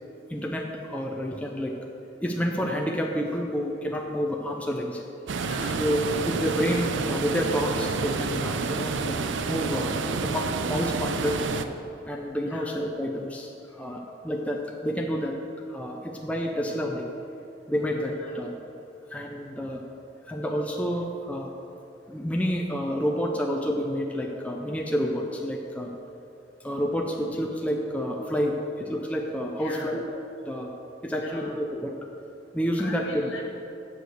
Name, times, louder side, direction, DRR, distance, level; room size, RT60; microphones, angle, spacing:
voice 1, 0.3-1.8 2.2-5.0 5.8-9.2 9.5-9.9 10.2-11.4 12.1-15.4 15.7-17.1 17.7-18.5 19.1-19.8 20.3-21.5 22.1-25.9 26.6-30.0 30.5-30.7 31.0-32.0 32.5-33.3, equal, 5° left, 0 dB, 0.5 m, -29 dB
sound 1, 5.3-11.6, right 4 dB, 75° right, 0.5 m, -29 dB
voice 2, 5.4-5.8 12.5-12.8 18.2-18.4 29.6-30.0 31.2-31.5 32.8-33.4, left 2 dB, 70° left, -1 dB, 1.7 m, -41 dB
7.8 x 6.6 x 6.5 m, 2.7 s
head